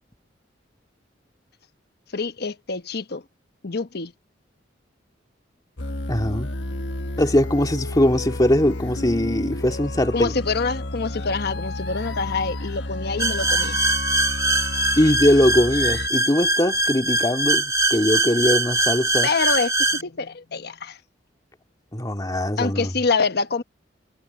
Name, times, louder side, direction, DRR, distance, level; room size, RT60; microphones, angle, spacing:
voice 1, 2.1-3.2 3.6-4.1 10.1-13.8 19.2-21.0 22.6-23.6, left 4 dB, 60° left, 1.1 m, -26 dB
sound 1, 5.8-16.1, left 2 dB, 75° left, 1.3 m, -31 dB
voice 2, 6.1-6.5 7.2-10.3 15.0-19.3 21.9-22.9, left 1 dB, 20° left, 2.1 m, -21 dB
sound 2, 13.2-20.0, right 2 dB, 15° right, 1.3 m, -22 dB
head